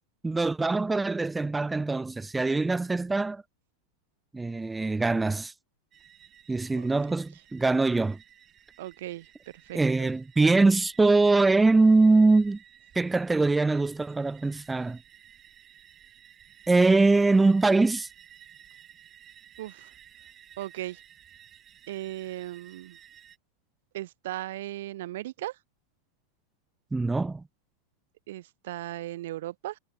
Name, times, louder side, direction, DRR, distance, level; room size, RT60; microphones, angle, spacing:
voice 1, 0.2-3.4 4.3-5.5 6.5-8.2 9.7-12.6 13.0-15.0 16.7-18.1 26.9-27.4, right 3 dB, 10° right, 0.4 m, -23 dB
sound 1, 5.9-23.4, right 10 dB, 25° right, 6.4 m, -55 dB
voice 2, 8.8-9.3 9.7-10.1 19.6-19.9 20.6-21.0 21.9-23.0 23.9-25.6 28.3-29.8, right 15 dB, 55° right, 0.6 m, -37 dB
figure-of-eight pair, 90°, 0 cm